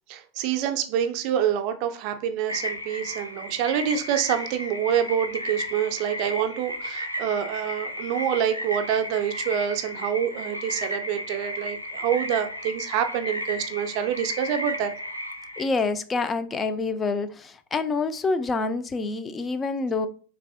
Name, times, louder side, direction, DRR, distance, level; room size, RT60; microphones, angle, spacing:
voice 1, 0.1-14.9, right 9 dB, 45° right, 0.5 m, -26 dB
sound 1, 2.5-15.6, left 1 dB, 90° left, 0.4 m, -34 dB
voice 2, 15.6-20.1, left 3 dB, 20° left, 0.3 m, -27 dB
3.3 x 3.2 x 2.5 m
figure-of-eight pair, 90°, 0 cm